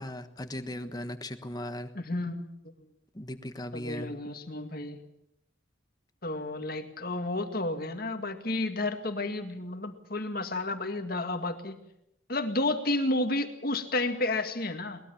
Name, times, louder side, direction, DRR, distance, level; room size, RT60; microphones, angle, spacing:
voice 1, 0.0-1.9 3.1-4.1, left 1 dB, 20° left, 9 dB, 1.3 m, -38 dB
voice 2, 2.0-2.9 3.7-5.0 6.2-11.8 12.3-15.0, left 2 dB, 50° left, 7 dB, 2.1 m, -31 dB
22.5 x 20.0 x 7.2 m, 0.79 s
head